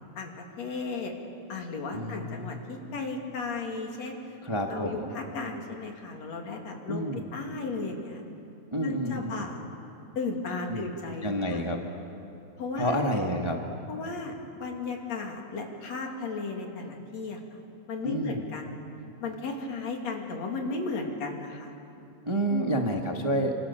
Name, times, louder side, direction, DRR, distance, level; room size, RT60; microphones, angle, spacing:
voice 1, 0.2-1.1 1.5-4.2 4.7-8.2 8.8-9.6 10.2-11.6 12.6-13.0 13.9-17.6 17.9-18.8 19.2-21.7 22.5-23.0, left 3 dB, 60° left, 2 dB, 3.7 m, -35 dB
voice 2, 1.9-2.5 4.4-5.1 6.9-7.3 8.7-9.5 10.7-10.9 11.2-11.8 12.8-13.6 18.0-18.4 22.2-23.6, equal, 20° right, 2 dB, 0.7 m, -29 dB
29.0 x 26.0 x 7.0 m, 2.7 s
omnidirectional pair, 3.6 m